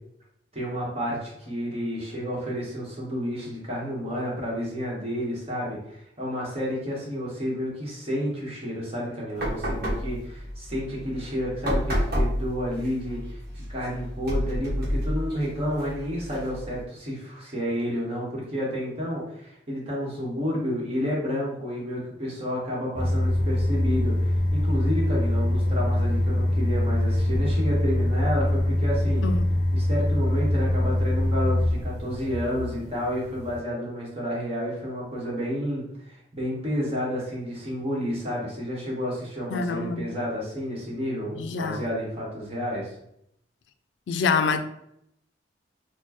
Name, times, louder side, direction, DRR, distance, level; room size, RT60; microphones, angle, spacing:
voice 1, 0.5-13.4 13.7-29.3 29.7-42.9, equal, 35° right, 1.2 m, -30 dB
sound 1, 9.4-16.8, equal, 60° right, 1.1 m, -30 dB
sound 2, 23.0-33.6, left 1 dB, 45° left, 0.9 m, -24 dB
voice 2, 39.5-40.0 41.3-41.8 44.1-44.6, left 5 dB, 80° left, 0.3 m, -26 dB
4.2 x 2.2 x 2.9 m
head